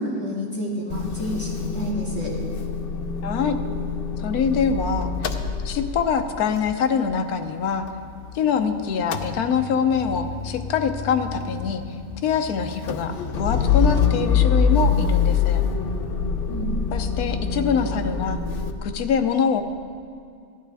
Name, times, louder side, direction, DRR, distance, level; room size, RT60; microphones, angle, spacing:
voice 1, 0.0-2.3 16.5-16.7, equal, 5° left, -8 dB, 3.1 m, -29 dB
Motor vehicle (road) / Engine starting / Idling, 0.9-8.6 8.9-18.7, left 6 dB, 55° left, 0.6 m, -25 dB
voice 2, 3.2-3.6 4.2-5.1 5.6-7.9 8.3-11.8 12.2-15.6 16.9-18.4 18.8-19.6, left 6 dB, 80° left, 7 dB, 1.3 m, -24 dB
16.5 x 11.5 x 3.4 m, 2.4 s
omnidirectional pair, 1.6 m